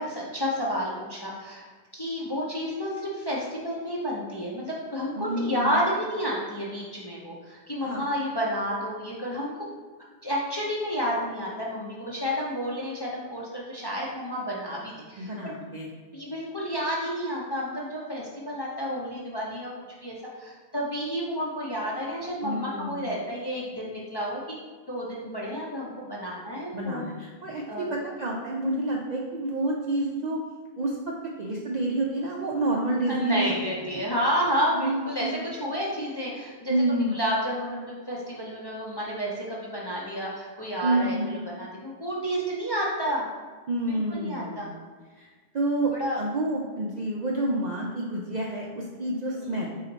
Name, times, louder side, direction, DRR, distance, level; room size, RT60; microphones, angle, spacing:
voice 1, 0.0-1.6 1.9-9.5 10.2-15.3 16.1-19.7 20.0-24.6 24.9-27.1 27.7-27.9 33.1-36.7 37.1-43.3 43.9-44.7 45.9-46.2 49.4-49.5, equal, 30° left, -5 dB, 0.5 m, -30 dB
voice 2, 5.2-5.8 7.8-8.0 15.2-15.9 22.4-23.1 26.7-30.4 30.8-33.5 33.9-34.0 34.7-35.4 36.7-37.1 40.8-41.3 43.7-44.7 45.2-49.7, right 1 dB, 60° right, -2 dB, 0.4 m, -29 dB
4.4 x 2.8 x 3.9 m, 1.4 s
omnidirectional pair, 1.2 m